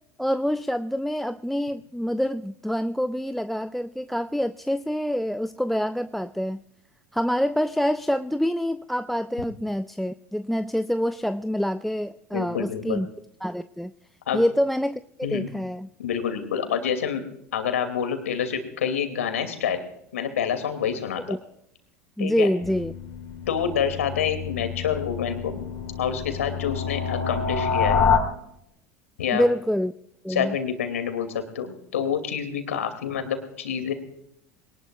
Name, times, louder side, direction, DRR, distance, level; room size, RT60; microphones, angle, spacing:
voice 1, 0.2-6.6 7.1-13.1 13.4-13.9 14.3-15.9 21.3-21.4 22.2-22.9 29.3-29.9 30.2-30.6, equal, ahead, 14 dB, 0.4 m, -26 dB
voice 2, 12.3-13.0 14.3-14.4 15.2-15.5 16.0-17.2 17.5-19.8 20.1-21.4 22.2-22.5 23.5-25.6 26.0-28.0 29.2-29.4 30.3-33.9, left 8 dB, 75° left, 7 dB, 2.5 m, -27 dB
sound 1, 22.6-28.2, left 6 dB, 30° left, 3.2 m, -27 dB
22.0 x 19.0 x 2.4 m, 0.76 s
figure-of-eight pair, 75°, 8 cm